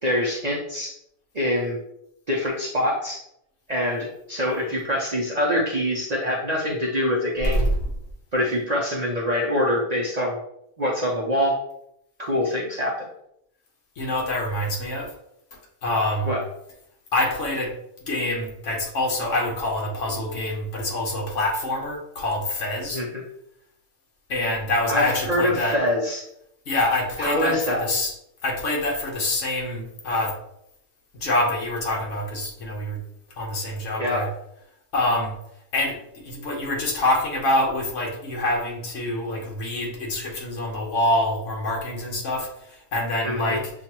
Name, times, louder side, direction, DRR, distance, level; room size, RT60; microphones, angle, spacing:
voice 1, 0.0-0.9 1.3-1.8 2.3-3.2 3.7-7.7 8.3-10.4 10.8-11.6 12.2-13.0 16.3-16.4 22.9-23.2 24.9-26.2 27.2-27.8 34.0-34.3 43.2-43.6, left 1 dB, 40° right, -3 dB, 0.7 m, -24 dB
voice 2, 14.0-15.1 15.8-16.3 17.1-17.7 18.1-23.0 24.3-25.8 26.7-28.1 28.4-30.4 31.2-33.0 33.4-34.3 34.9-35.3 35.7-43.7, left 1 dB, 75° left, -1 dB, 1.3 m, -25 dB
6.8 x 2.4 x 2.9 m, 0.76 s
omnidirectional pair, 1.3 m